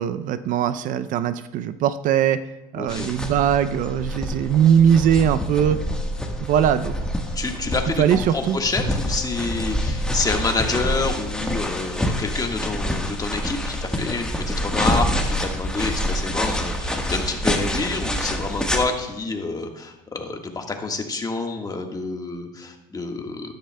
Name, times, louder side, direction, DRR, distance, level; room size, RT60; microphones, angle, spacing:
voice 1, 0.0-2.4 2.7-5.8 6.4-6.9 8.0-8.6, right 9 dB, 60° right, 13 dB, 0.5 m, -20 dB
voice 2, 2.7-3.1 7.3-23.5, left 3 dB, 25° left, 3 dB, 1.5 m, -28 dB
sound 1, 2.9-18.8, equal, 5° left, 1.3 m, -27 dB
sound 2, 3.5-12.1, left 5 dB, 85° left, 2.2 m, -46 dB
13.0 x 10.5 x 2.2 m, 1.0 s
supercardioid pair, 90°, 16 cm